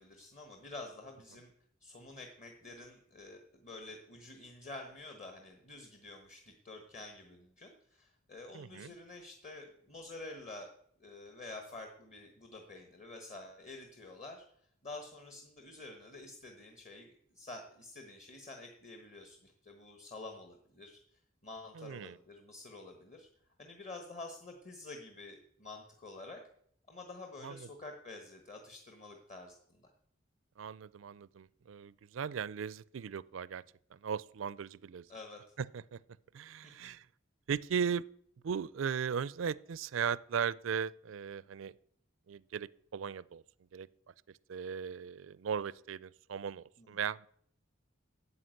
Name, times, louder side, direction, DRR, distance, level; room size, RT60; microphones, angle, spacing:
voice 1, 0.0-1.5 1.8-10.7 11.0-14.4 14.8-23.3 23.6-26.4 26.9-29.9 35.1-35.4 36.6-36.9 46.8-47.0, left 2 dB, 40° left, 1.4 m, -49 dB
voice 2, 8.5-8.9 21.7-22.2 27.4-27.7 30.6-33.6 33.9-35.0 35.6-36.0 36.3-37.1 37.5-38.1 38.4-41.7 42.3-43.4 43.7-43.9 44.5-47.3, right 7 dB, 75° right, 0.4 m, -37 dB
9.7 x 8.2 x 7.8 m
head